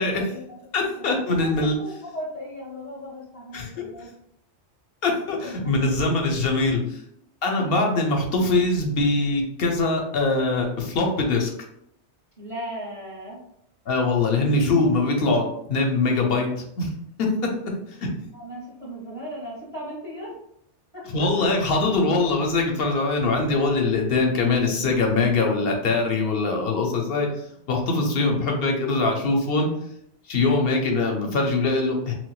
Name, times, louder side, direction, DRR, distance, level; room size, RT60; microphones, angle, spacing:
voice 1, 0.0-0.7 1.0-4.1 5.4-6.1 7.6-7.9 12.4-13.4 18.3-20.4 20.9-21.3, equal, 30° right, -7 dB, 0.8 m, -37 dB
voice 2, 0.7-1.8 3.5-3.9 5.0-6.8 7.4-11.5 13.9-16.5 16.8-16.9 17.2-17.5 17.9-18.1 21.1-27.3 27.7-29.7 30.3-32.1, left 3 dB, 60° left, 2 dB, 0.7 m, -22 dB
4.2 x 2.1 x 2.3 m, 0.74 s
omnidirectional pair, 1.2 m